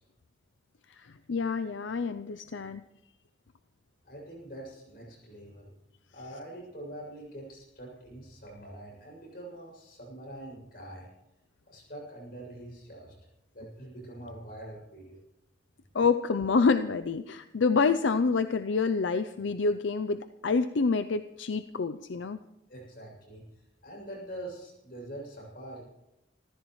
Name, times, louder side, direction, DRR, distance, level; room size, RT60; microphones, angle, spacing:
voice 1, 1.0-2.8 15.9-22.4, left 4 dB, 80° left, 10 dB, 0.5 m, -27 dB
voice 2, 4.0-5.7 6.1-11.1 11.7-13.1 13.5-15.2 22.7-25.8, right 1 dB, 50° left, 0 dB, 7.2 m, -44 dB
27.0 x 14.5 x 3.2 m, 0.89 s
head